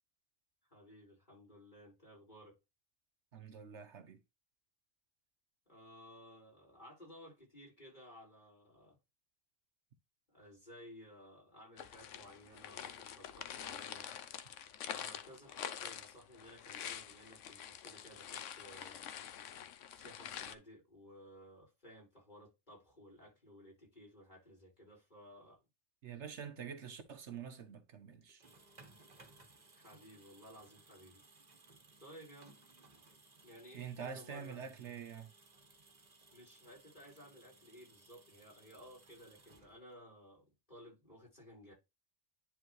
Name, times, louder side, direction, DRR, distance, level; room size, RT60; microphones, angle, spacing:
voice 1, 0.7-2.6 5.7-9.0 10.3-14.1 14.8-19.2 19.9-25.6 29.7-31.2 32.0-32.5 33.4-34.6 36.3-41.7, equal, 35° left, 5.1 m, -57 dB
voice 2, 3.3-4.2 26.0-28.4 33.7-35.3, right 7 dB, 65° right, 1.2 m, -46 dB
sound 1, 11.8-20.5, left 9 dB, 70° left, 1.0 m, -46 dB
sound 2, 28.2-40.1, right 3 dB, 35° right, 1.4 m, -63 dB
10.5 x 4.0 x 3.1 m
omnidirectional pair, 1.3 m